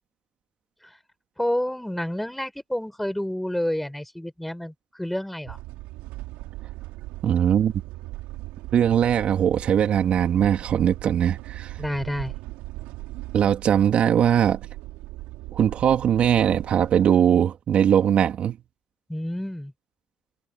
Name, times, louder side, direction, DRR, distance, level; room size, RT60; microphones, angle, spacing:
voice 1, 1.4-5.6 11.8-12.3 19.1-19.7, left 1 dB, 5° left, 6.1 m, -29 dB
sound 1, 5.4-17.1, right 19 dB, 80° right, 4.4 m, -38 dB
voice 2, 7.2-7.7 8.7-11.8 13.3-14.6 15.5-18.6, right 9 dB, 55° right, 2.7 m, -20 dB
hypercardioid pair, 60°, 2 cm